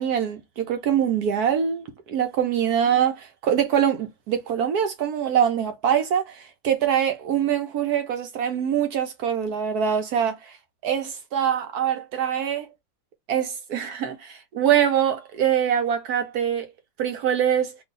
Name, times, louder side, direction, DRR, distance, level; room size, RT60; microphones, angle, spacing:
voice 1, 0.0-10.4 10.8-12.7 13.3-16.7 17.0-17.8, right 9 dB, 65° right, 1.0 m, -24 dB
3.0 x 2.6 x 3.7 m
omnidirectional pair, 2.0 m